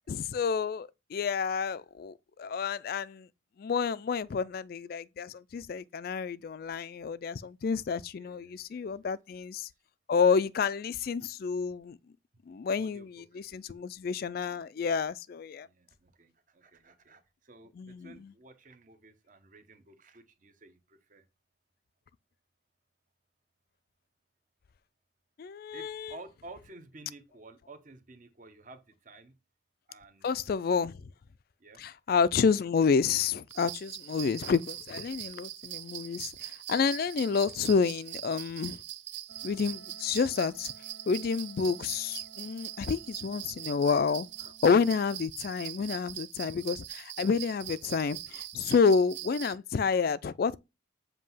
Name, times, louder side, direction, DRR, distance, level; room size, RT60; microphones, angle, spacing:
voice 1, 0.1-3.3 3.6-9.7 10.1-12.0 12.5-15.7 17.8-18.3 25.4-26.1 30.2-30.9 31.8-38.8 39.4-40.7 41.1-44.3 44.6-50.6, left 5 dB, 45° left, 0.3 m, -29 dB
voice 2, 8.2-9.1 12.8-13.5 15.6-21.2 25.7-29.4 29.9-30.9 31.6-31.8 39.6-39.7, right 2 dB, 40° right, 0.8 m, -53 dB
sound 1, 33.5-49.5, right 13 dB, 60° right, 0.4 m, -42 dB
Wind instrument woodwind instrument, 39.3-44.8, right 3 dB, 80° right, 2.4 m, -55 dB
7.5 x 2.7 x 5.5 m
head